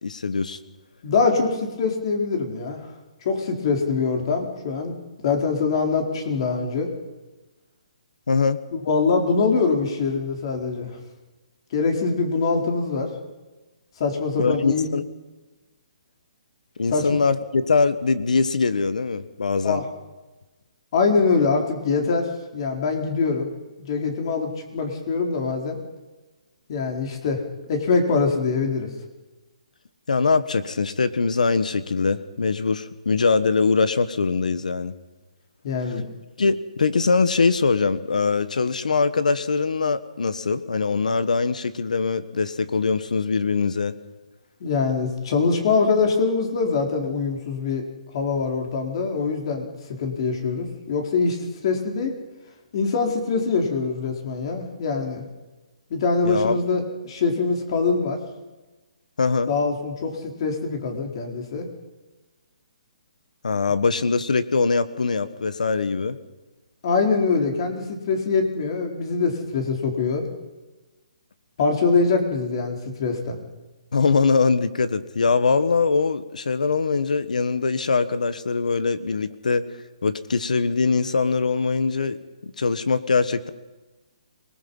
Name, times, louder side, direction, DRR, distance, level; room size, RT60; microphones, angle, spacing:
voice 1, 0.0-0.6 8.3-8.6 14.4-15.0 16.8-19.8 30.1-34.9 36.4-43.9 56.2-56.6 59.2-59.5 63.4-66.2 73.9-79.7 80.0-82.2 82.4-83.5, left 4 dB, 85° left, 14 dB, 1.5 m, -22 dB
voice 2, 1.0-2.9 3.2-5.0 5.2-6.9 8.9-11.0 11.7-13.1 14.0-14.9 16.9-17.1 19.6-19.9 20.9-23.5 23.8-25.8 26.7-27.4 27.7-28.9 35.6-36.0 44.6-47.9 48.1-52.2 52.7-55.2 55.9-58.2 59.5-61.7 66.8-70.2 71.6-73.4, left 4 dB, 45° left, 3 dB, 4.2 m, -23 dB
26.5 x 20.0 x 5.5 m, 1.2 s
hypercardioid pair, 155°, 4 cm